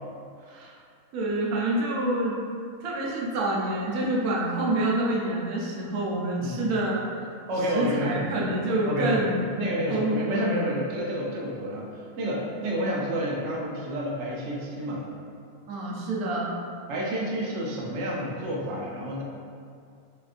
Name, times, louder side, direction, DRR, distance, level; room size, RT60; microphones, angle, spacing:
voice 1, 1.1-2.4 2.8-7.0 7.7-9.5 9.9-10.5 15.7-16.5, right 1 dB, 85° right, -4 dB, 1.1 m, -27 dB
voice 2, 6.4-6.9 7.5-8.6 8.9-9.3 9.6-15.1 16.9-19.2, equal, 65° right, -3 dB, 0.8 m, -30 dB
4.2 x 2.4 x 2.4 m, 2.3 s
omnidirectional pair, 1.5 m